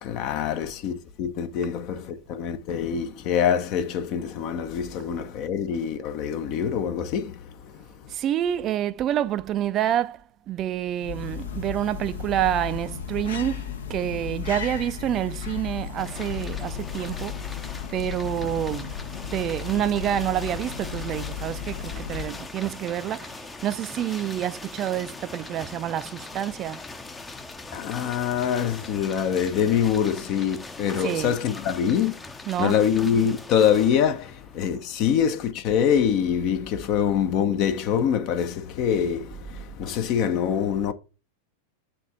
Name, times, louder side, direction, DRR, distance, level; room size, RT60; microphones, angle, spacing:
voice 1, 0.0-8.1 27.7-32.2 32.6-40.9, left 8 dB, 40° left, 0.8 m, -25 dB
voice 2, 8.1-10.2 10.5-17.4 17.9-18.9 19.3-26.8 31.0-31.3 32.5-32.8, right 11 dB, 30° right, 0.5 m, -28 dB
sound 1, 10.8-22.6, left 8 dB, 65° left, 1.0 m, -35 dB
sound 2, 16.0-35.4, left 3 dB, 10° left, 0.7 m, -41 dB
6.9 x 3.5 x 5.5 m
figure-of-eight pair, 90°, 0 cm